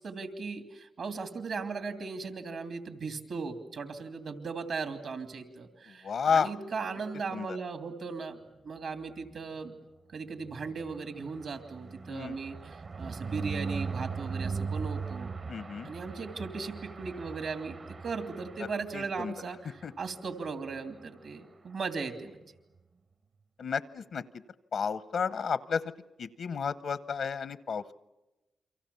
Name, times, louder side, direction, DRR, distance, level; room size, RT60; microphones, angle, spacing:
voice 1, 0.0-8.4 8.6-9.7 10.1-15.3 15.8-22.4, right 4 dB, 70° right, 8 dB, 2.8 m, -37 dB
voice 2, 6.0-6.5 7.3-7.5 12.1-12.4 15.5-15.9 18.9-19.3 19.8-19.9 23.6-24.2 24.7-25.8 26.2-27.9, left 6 dB, 75° left, 15 dB, 0.9 m, -31 dB
sound 1, 10.4-19.2 19.7-19.8 20.1-20.2 20.5-20.7, right 5 dB, 50° right, 1.1 m, -39 dB
29.0 x 24.5 x 7.0 m, 1.0 s
cardioid pair, 70°, 0 cm